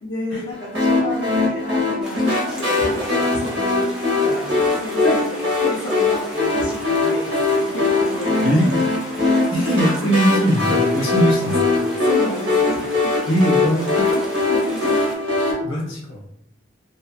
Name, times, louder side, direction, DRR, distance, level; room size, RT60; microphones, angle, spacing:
voice 1, 0.0-3.9 4.1-5.2 5.6-8.6 9.2-9.8 12.0-13.3 14.5-15.0, left 1 dB, 60° left, -6 dB, 0.5 m, -31 dB
sound 1, 0.7-15.5, left 3 dB, 60° right, 0.9 m, -21 dB
sound 2, 2.0-15.2, equal, 5° right, 0.4 m, -37 dB
voice 2, 9.5-11.8 13.3-14.3 14.8-15.1 15.4-16.2, right 1 dB, 80° left, -4 dB, 0.9 m, -21 dB
2.6 x 2.4 x 2.3 m, 0.73 s
head